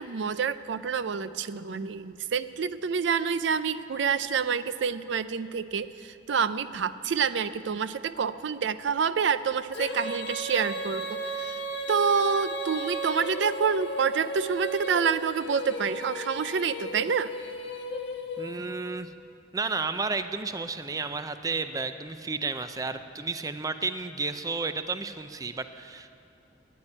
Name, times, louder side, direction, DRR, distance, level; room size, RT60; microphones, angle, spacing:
voice 1, 0.0-11.6 11.9-17.3, right 6 dB, 75° right, 14 dB, 0.5 m, -28 dB
Female singing, 9.7-18.9, right 1 dB, 75° left, 1.5 m, -35 dB
voice 2, 18.4-19.1 19.5-26.1, right 4 dB, 20° right, 10 dB, 0.4 m, -32 dB
13.0 x 9.9 x 9.8 m, 2.7 s
head